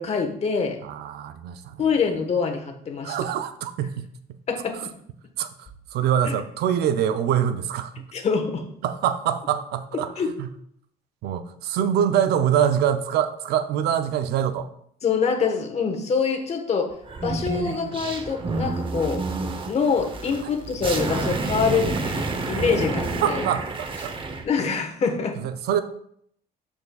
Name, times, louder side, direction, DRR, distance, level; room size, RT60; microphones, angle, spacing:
voice 1, 0.0-0.8 1.8-3.1 4.5-4.8 6.3-6.4 8.1-8.6 10.2-10.3 15.0-16.9 17.2-19.2 19.7-23.4 24.4-25.4, left 5 dB, 40° left, 4 dB, 1.3 m, -25 dB
voice 2, 0.8-1.9 3.0-4.1 4.8-4.9 5.4-8.1 8.8-10.1 10.4-10.5 11.2-14.7 23.2-24.1 25.4-25.8, right 9 dB, 75° right, 10 dB, 0.6 m, -24 dB
sound 1, 17.0-24.4, right 3 dB, 30° right, 0.8 m, -29 dB
12.5 x 4.4 x 2.3 m, 0.68 s
cardioid pair, 110°, 17 cm